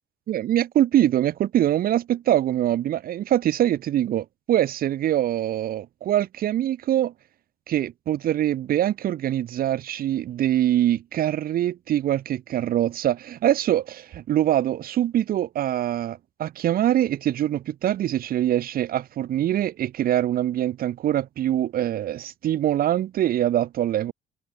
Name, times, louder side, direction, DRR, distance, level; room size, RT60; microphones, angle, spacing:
voice 1, 0.3-7.1 7.7-24.1, right 12 dB, 60° right, 2.1 m, -24 dB
cardioid pair, 110°, 17 cm